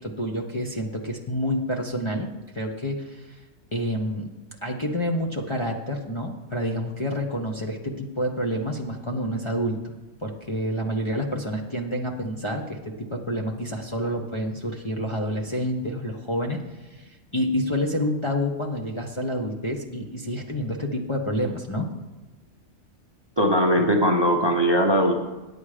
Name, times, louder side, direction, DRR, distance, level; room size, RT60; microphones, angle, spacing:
voice 1, 0.0-3.4 3.7-4.3 4.6-9.8 10.2-21.9, equal, 25° left, 0 dB, 0.7 m, -28 dB
voice 2, 23.4-25.2, equal, 25° right, 3 dB, 0.7 m, -20 dB
9.5 x 8.6 x 4.9 m, 1.2 s
omnidirectional pair, 1.3 m